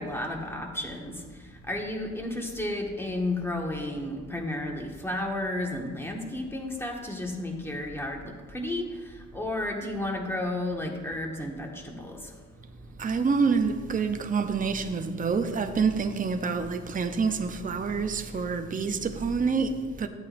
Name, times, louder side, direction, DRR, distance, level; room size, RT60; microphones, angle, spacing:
voice 1, 0.0-12.4, left 1 dB, 10° left, 1.6 m, -33 dB
voice 2, 13.0-20.1, right 5 dB, 25° right, 0.7 m, -27 dB
13.0 x 8.6 x 2.6 m
cardioid pair, 90°, 30 cm